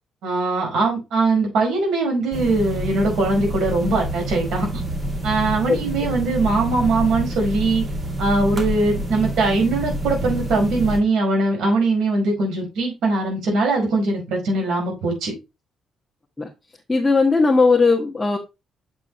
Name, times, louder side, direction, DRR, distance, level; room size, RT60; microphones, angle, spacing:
voice 1, 0.2-4.7 5.2-7.8 8.2-15.3, right 3 dB, 80° right, 0 dB, 4.9 m, -21 dB
sound 1, 2.3-11.0, right 1 dB, 30° right, 2.4 m, -27 dB
voice 2, 16.9-18.4, left 4 dB, 10° left, -1 dB, 1.3 m, -17 dB
7.6 x 6.3 x 2.9 m, 0.25 s
cardioid pair, 110°, 0 cm